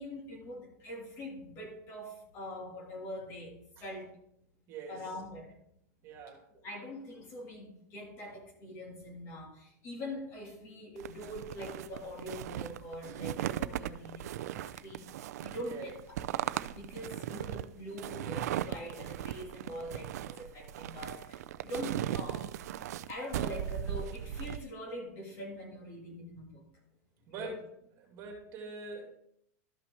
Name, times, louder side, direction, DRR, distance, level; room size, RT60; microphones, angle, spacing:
voice 1, 0.0-4.1 4.9-5.6 6.6-16.0 16.7-22.5 23.1-26.6 27.3-27.5, left 1 dB, 30° left, 0 dB, 1.9 m, -43 dB
voice 2, 4.7-5.0 6.0-6.4 15.6-15.9 27.3-27.7 28.0-29.1, right 3 dB, 35° right, 0 dB, 2.4 m, -43 dB
sound 1, 11.0-24.6, right 12 dB, 75° right, 0.4 m, -38 dB
12.5 x 5.9 x 3.3 m, 0.73 s
supercardioid pair, 155°, 9 cm